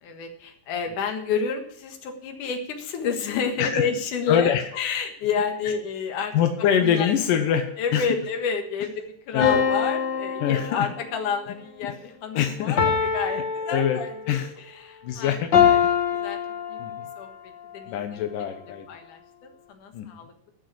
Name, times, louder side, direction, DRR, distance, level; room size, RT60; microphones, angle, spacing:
voice 1, 0.0-6.3 6.8-7.1 7.8-15.8 16.2-16.4 16.7-16.8 17.2-17.3 17.7-18.2 18.9-20.3, left 6 dB, 70° left, 4 dB, 3.1 m, -30 dB
voice 2, 4.3-4.6 6.3-7.7 7.9-8.1 9.3-9.6 10.4-10.9 12.4-12.8 13.7-14.0 14.3-14.5 15.0-15.5 16.8-17.1 17.9-18.9 19.9-20.1, left 9 dB, 90° left, 6 dB, 2.7 m, -24 dB
sound 1, 9.4-11.3 12.8-14.4 15.5-17.2, left 7 dB, 50° left, 1.4 m, -24 dB
14.0 x 6.4 x 8.5 m, 0.69 s
omnidirectional pair, 3.7 m